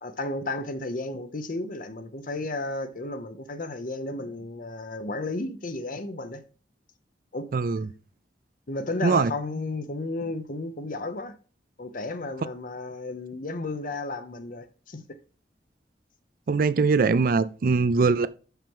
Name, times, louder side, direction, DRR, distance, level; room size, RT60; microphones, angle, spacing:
voice 1, 0.0-6.4 7.3-7.5 8.7-11.3 11.8-15.0, left 2 dB, 50° left, 0.8 m, -33 dB
voice 2, 7.5-7.9 9.0-9.3 16.5-18.3, right 4 dB, 55° right, 0.4 m, -22 dB
5.8 x 5.8 x 5.3 m
head